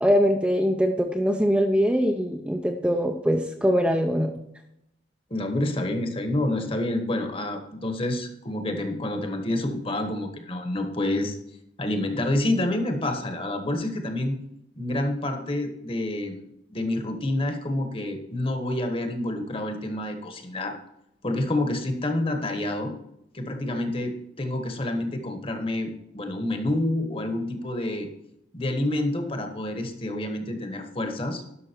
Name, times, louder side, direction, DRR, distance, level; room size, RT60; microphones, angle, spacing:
voice 1, 0.0-4.3, equal, 5° right, 2 dB, 0.6 m, -22 dB
voice 2, 5.3-11.4 11.8-14.4 14.8-16.4 16.7-20.7 21.2-22.9 23.3-28.1 28.5-31.6, left 1 dB, 30° left, 5 dB, 1.3 m, -28 dB
11.5 x 6.1 x 4.5 m, 0.79 s
head